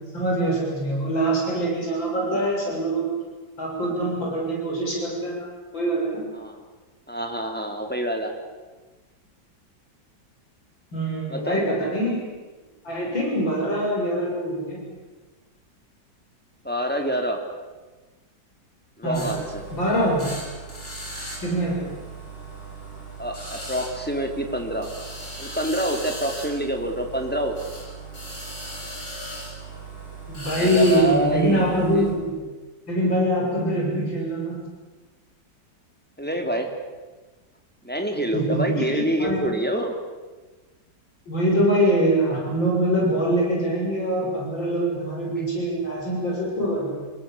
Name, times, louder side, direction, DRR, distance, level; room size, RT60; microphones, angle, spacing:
voice 1, 0.1-3.1 3.6-6.2 10.9-12.2 12.8-14.8 19.0-19.3 19.7-20.3 21.4-21.9 30.3-32.4 32.9-34.6 38.3-39.4 41.3-46.9, right 1 dB, 85° left, -2 dB, 7.9 m, -24 dB
voice 2, 7.1-8.3 11.3-11.6 16.6-17.4 19.0-19.6 20.3-20.4 23.2-24.9 25.4-27.8 30.5-31.7 31.9-32.1 36.2-36.7 37.8-39.9 45.4-45.5, equal, 5° left, 3 dB, 3.1 m, -27 dB
sound 1, 19.1-32.1, right 2 dB, 45° left, 6.5 m, -37 dB
27.0 x 20.0 x 8.6 m, 1.3 s
omnidirectional pair, 2.0 m